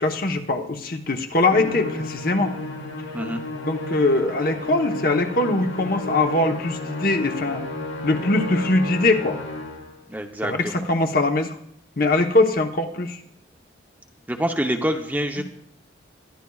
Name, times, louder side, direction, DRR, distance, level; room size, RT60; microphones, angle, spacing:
voice 1, 0.0-2.5 3.6-7.6 8.0-9.4 10.4-11.6 12.0-13.2, left 2 dB, 45° left, 4 dB, 1.0 m, -22 dB
Musical instrument, 1.5-10.0, left 2 dB, 90° left, 2.5 m, -32 dB
voice 2, 10.1-10.8 14.3-15.4, equal, 10° right, 4 dB, 0.7 m, -26 dB
22.0 x 12.0 x 2.4 m, 0.73 s
head